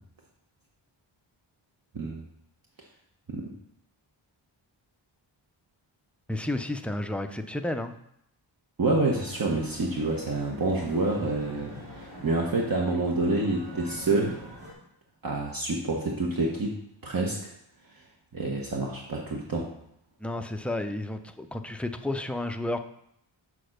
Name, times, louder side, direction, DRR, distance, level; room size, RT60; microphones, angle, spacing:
voice 1, 1.9-2.3 3.3-3.5 8.8-14.4 15.2-17.5 18.3-19.7, right 2 dB, 45° right, -2 dB, 1.0 m, -28 dB
voice 2, 6.3-7.9 20.2-22.8, left 1 dB, 5° left, 6 dB, 0.4 m, -31 dB
sound 1, 9.0-14.7, equal, 85° right, 3.2 m, -44 dB
6.8 x 4.3 x 6.4 m, 0.74 s
wide cardioid pair, 120°, 46 cm